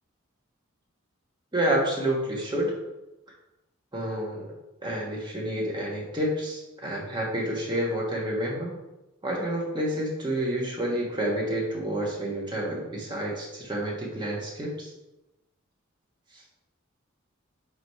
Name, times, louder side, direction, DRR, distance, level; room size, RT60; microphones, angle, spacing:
voice 1, 1.5-2.7 3.9-4.5 4.8-8.7 9.2-14.9 16.3-16.4, right 1 dB, 20° right, -3 dB, 1.3 m, -29 dB
4.7 x 4.0 x 5.4 m, 0.99 s
head